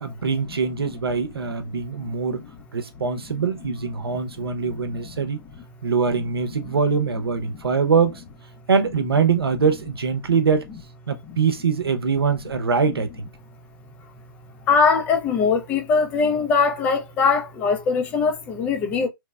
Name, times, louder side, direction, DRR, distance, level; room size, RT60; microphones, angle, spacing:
voice 1, 0.0-2.5 2.7-5.4 5.8-8.2 8.7-10.6 11.1-13.1, right 5 dB, 80° right, 0.7 m, -23 dB
voice 2, 14.7-19.1, left 5 dB, 10° left, 0.3 m, -21 dB
3.1 x 2.1 x 2.3 m
hypercardioid pair, 145°, 12 cm